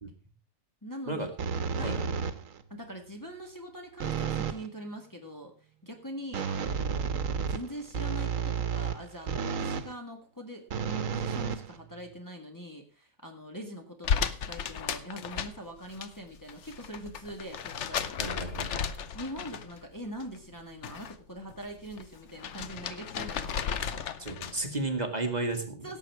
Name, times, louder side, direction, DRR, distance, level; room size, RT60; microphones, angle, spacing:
voice 1, 0.8-1.3 1.7-2.0 2.7-5.5 5.8-7.1 7.5-18.2 19.1-23.8 25.8-26.0, equal, 15° left, 2 dB, 1.7 m, -43 dB
sound 1, 1.4-2.6 4.0-4.7 6.3-9.9 10.7-12.2, right 6 dB, 80° right, 1.4 m, -32 dB
sound 2, 14.0-16.1 16.4-19.9 20.2-21.1 21.5-24.7, left 7 dB, 65° left, 1.1 m, -34 dB
voice 2, 18.2-18.8 24.2-25.9, right 2 dB, 30° right, 5 dB, 1.8 m, -33 dB
17.5 x 7.3 x 4.6 m, 0.35 s
omnidirectional pair, 1.4 m